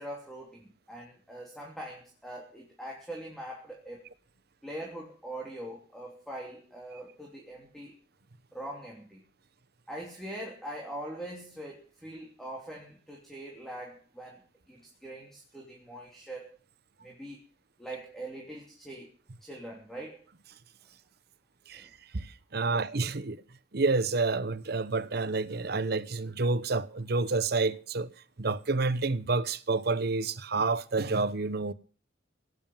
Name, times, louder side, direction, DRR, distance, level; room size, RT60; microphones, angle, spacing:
voice 1, 0.0-4.0 4.6-7.9 8.5-9.2 9.9-14.4 14.7-16.5 17.0-17.4 17.8-19.1 19.4-20.2 21.7-21.9 22.6-22.8, right 1 dB, ahead, 3.0 m, -42 dB
voice 2, 21.7-23.4 23.7-28.1 28.4-31.7, right 3 dB, 60° right, 1.0 m, -29 dB
18.0 x 9.4 x 7.3 m
head